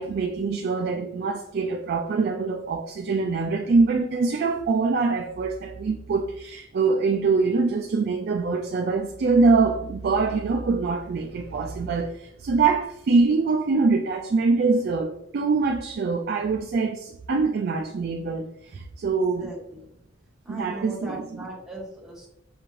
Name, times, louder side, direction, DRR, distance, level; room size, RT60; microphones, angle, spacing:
voice 1, 0.0-19.5 20.5-21.4, right 4 dB, 55° right, 0.3 m, -24 dB
voice 2, 19.3-19.8 20.4-22.3, right 2 dB, ahead, 1.2 m, -38 dB
5.6 x 2.5 x 3.1 m
head